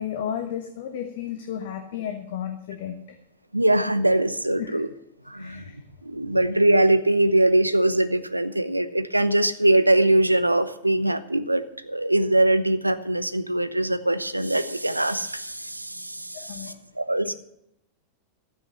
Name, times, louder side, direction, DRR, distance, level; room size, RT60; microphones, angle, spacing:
voice 1, 0.0-3.2 4.6-4.8 5.3-5.8 16.3-16.7 17.2-17.3, left 9 dB, 55° left, 6 dB, 1.2 m, -33 dB
voice 2, 3.5-4.9 5.3-5.6 6.0-17.3, right 1 dB, 85° right, 13 dB, 0.8 m, -22 dB
13.5 x 9.1 x 6.6 m, 0.79 s
figure-of-eight pair, 90°, 0 cm